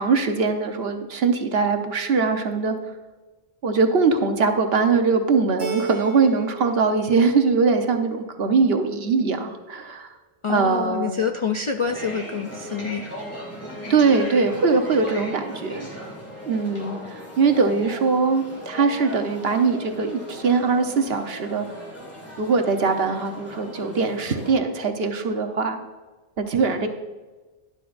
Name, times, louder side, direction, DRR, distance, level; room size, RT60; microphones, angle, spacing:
voice 1, 0.0-2.8 3.6-10.1 10.5-11.2 13.9-15.9 16.5-21.7 22.4-25.8 26.4-26.9, right 4 dB, 70° right, 5 dB, 1.2 m, -21 dB
Keyboard (musical), 5.6-6.7 7.0-7.8, right 6 dB, 30° right, 2.2 m, -33 dB
voice 2, 10.4-13.0, left 6 dB, 50° left, 5 dB, 0.4 m, -26 dB
sound 1, 11.8-24.5, equal, 15° left, 2.2 m, -38 dB
12.0 x 11.5 x 2.6 m, 1.2 s
omnidirectional pair, 1.1 m